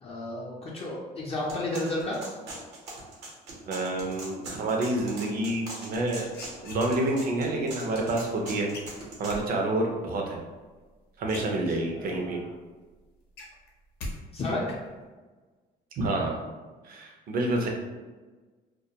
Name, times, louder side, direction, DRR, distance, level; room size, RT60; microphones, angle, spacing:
voice 1, 0.0-2.2 11.9-12.5 14.3-14.8, left 2 dB, 35° left, -4 dB, 0.5 m, -32 dB
sound 1, 1.5-9.4, right 2 dB, 85° right, 0.9 m, -41 dB
voice 2, 3.7-6.3 6.6-8.7 9.2-10.4 11.2-12.4 16.0-16.4 16.8-17.7, right 2 dB, 60° right, 1 dB, 0.6 m, -28 dB
sound 2, 6.0-7.3 8.7-9.4 10.8-10.9 11.2-12.1 12.5-12.6 12.9-14.2 14.4-14.9, left 1 dB, 75° left, 0.7 m, -40 dB
2.2 x 2.2 x 2.8 m, 1.3 s
cardioid pair, 110°, 17 cm